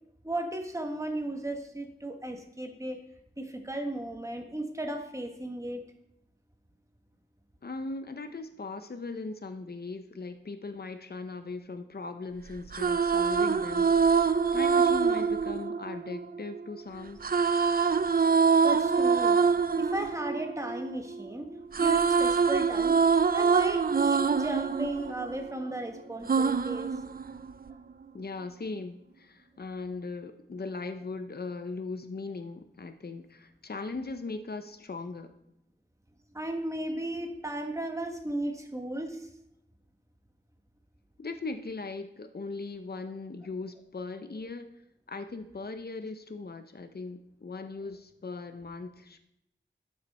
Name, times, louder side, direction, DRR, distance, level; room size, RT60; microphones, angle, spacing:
voice 1, 0.2-3.0 3.4-5.8 18.6-19.4 19.8-21.5 21.8-23.0 23.3-26.9 36.3-39.3, right 1 dB, 15° right, 4 dB, 1.3 m, -35 dB
voice 2, 7.6-17.2 28.1-35.3 41.2-44.7 45.1-49.2, left 3 dB, 55° left, 9 dB, 0.7 m, -39 dB
sound 1, 12.5-16.6 17.2-21.3 21.5-25.8 26.3-27.7, right 5 dB, 50° right, 0.4 m, -25 dB
11.5 x 7.0 x 4.2 m, 0.80 s
wide cardioid pair, 45°, 19 cm